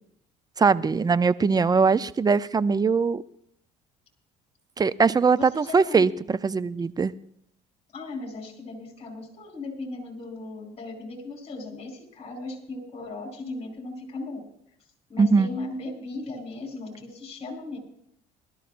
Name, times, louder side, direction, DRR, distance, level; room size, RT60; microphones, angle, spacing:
voice 1, 0.6-3.2 4.8-7.1 15.2-15.5, right 5 dB, 25° right, 16 dB, 0.6 m, -21 dB
voice 2, 5.3-6.1 7.9-14.4 15.1-17.8, left 2 dB, 40° left, 1 dB, 4.7 m, -37 dB
21.0 x 13.0 x 2.6 m, 0.71 s
supercardioid pair, 75°, 17 cm